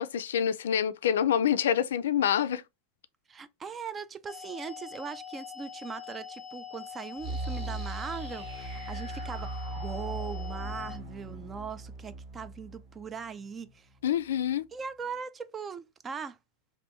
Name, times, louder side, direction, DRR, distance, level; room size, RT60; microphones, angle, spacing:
voice 1, 0.0-2.6 14.0-14.6, left 9 dB, 85° left, 0.3 m, -26 dB
voice 2, 3.3-13.9 14.7-16.4, right 6 dB, 20° right, 0.4 m, -40 dB
sound 1, 4.3-11.0, left 7 dB, 25° left, 0.7 m, -44 dB
sound 2, 7.2-14.0, right 2 dB, 45° right, 1.8 m, -39 dB
3.4 x 2.5 x 3.0 m
hypercardioid pair, 120°, 0 cm